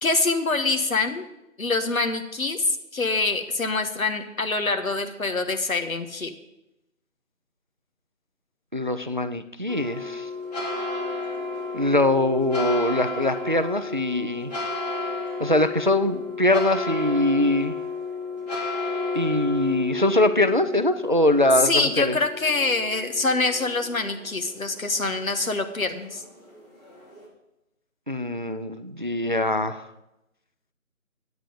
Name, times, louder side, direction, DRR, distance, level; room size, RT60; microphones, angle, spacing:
voice 1, 0.0-1.3 1.6-6.3 21.6-26.2, left 3 dB, 75° left, 7 dB, 1.5 m, -25 dB
voice 2, 8.7-10.3 11.7-14.5 15.4-17.8 19.1-22.2 28.1-29.9, left 1 dB, 35° right, 11 dB, 0.4 m, -23 dB
sound 1, 9.7-27.3, left 3 dB, 30° left, 2.6 m, -33 dB
9.0 x 8.9 x 5.2 m, 0.92 s
figure-of-eight pair, 160°, 42 cm